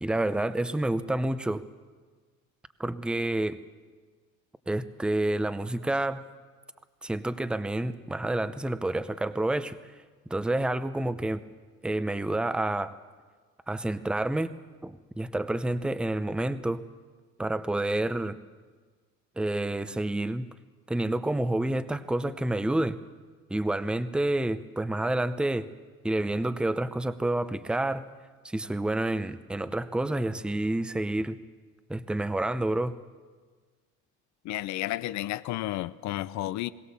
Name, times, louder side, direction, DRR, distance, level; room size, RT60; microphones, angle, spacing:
voice 1, 0.0-1.6 2.8-3.6 4.7-6.2 7.0-9.8 10.3-11.4 11.8-12.9 13.7-14.5 14.8-16.8 17.4-18.4 19.4-20.5 20.9-23.0 23.5-25.7 26.0-28.0 28.4-31.4 31.9-32.9, right 1 dB, 5° right, 12 dB, 0.6 m, -29 dB
voice 2, 34.4-36.7, left 15 dB, 65° left, 14 dB, 0.6 m, -32 dB
21.5 x 17.5 x 7.0 m, 1.4 s
cardioid pair, 125°, 30 cm